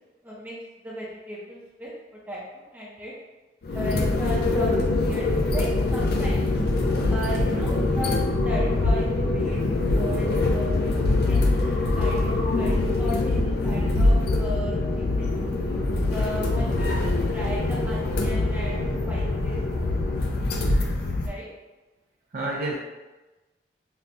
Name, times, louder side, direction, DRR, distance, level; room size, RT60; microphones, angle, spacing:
voice 1, 0.2-3.1 3.7-6.5 7.1-14.8 15.2-15.3 16.0-19.6 21.2-21.5, equal, 10° right, -6 dB, 0.7 m, -36 dB
sound 1, 3.6-21.3, left 2 dB, 60° left, 0.5 m, -24 dB
voice 2, 7.5-7.9 16.2-16.3 22.3-22.8, right 2 dB, 50° right, -3 dB, 0.4 m, -31 dB
5.8 x 2.2 x 2.6 m, 1.1 s
head